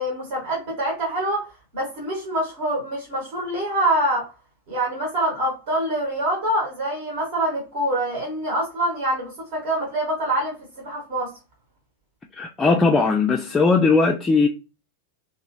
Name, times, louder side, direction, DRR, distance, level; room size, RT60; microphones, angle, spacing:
voice 1, 0.0-1.4 1.7-4.2 4.7-11.3, right 1 dB, 50° right, 1.1 m, -25 dB
voice 2, 12.4-14.5, left 4 dB, 15° left, 0.3 m, -18 dB
2.9 x 2.4 x 2.5 m
figure-of-eight pair, 90°, 0 cm